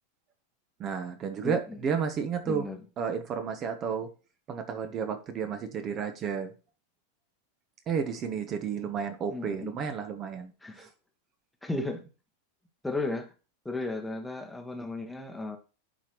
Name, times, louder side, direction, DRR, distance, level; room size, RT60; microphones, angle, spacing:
voice 1, 0.8-2.7 3.0-4.1 4.5-6.5 7.9-10.5 10.8-10.9, right 6 dB, 30° right, 1.0 m, -32 dB
voice 2, 1.4-1.8 2.4-2.8 9.3-9.7 10.6-10.9 11.6-12.1 12.8-13.3 13.6-15.6, left 2 dB, 5° left, 1.1 m, -34 dB
11.5 x 4.5 x 3.1 m
figure-of-eight pair, 90°, 0 cm